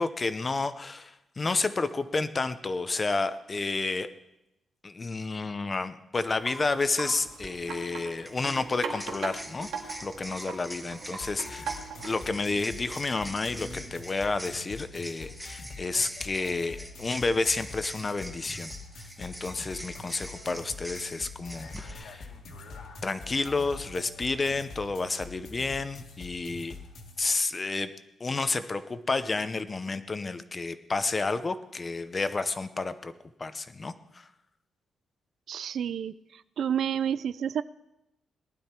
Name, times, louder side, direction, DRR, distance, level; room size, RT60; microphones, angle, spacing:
voice 1, 0.0-4.1 4.8-11.7 12.0-18.7 19.0-22.3 23.0-26.8 27.2-27.9 28.2-33.1 33.4-34.3, left 3 dB, 20° left, 12 dB, 0.7 m, -30 dB
Wind chime, 6.2-12.4, right 5 dB, 90° right, 2.2 m, -40 dB
sound 1, 7.3-7.5 8.3-21.9, equal, ahead, 1.0 m, -44 dB
sound 2, 11.2-27.2, left 3 dB, 65° left, 2.1 m, -45 dB
voice 2, 35.5-36.1 36.6-37.6, right 8 dB, 55° right, 16 dB, 0.4 m, -29 dB
19.0 x 12.0 x 4.4 m, 0.88 s
wide cardioid pair, 175°, 0 cm